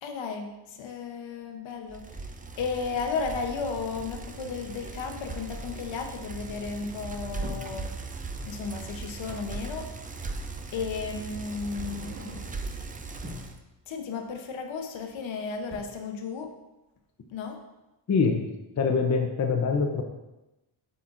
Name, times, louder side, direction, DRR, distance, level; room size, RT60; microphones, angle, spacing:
voice 1, 0.0-2.3 2.6-7.9 8.5-9.9 10.7-12.4 13.9-16.5 17.3-17.6, left 5 dB, 70° left, 4 dB, 1.0 m, -34 dB
Bicycle, 1.9-13.6, right 3 dB, 20° right, 0.4 m, -38 dB
sound 1, 7.4-7.8 9.5-9.6 10.7-10.9 11.5-12.7 13.1-13.6 14.9-15.3 15.5-15.8, equal, 35° right, 2.1 m, -44 dB
voice 2, 18.1-18.5 18.8-20.0, left 5 dB, 35° left, 3 dB, 0.7 m, -24 dB
7.9 x 5.9 x 2.6 m, 0.98 s
cardioid pair, 120°, 48 cm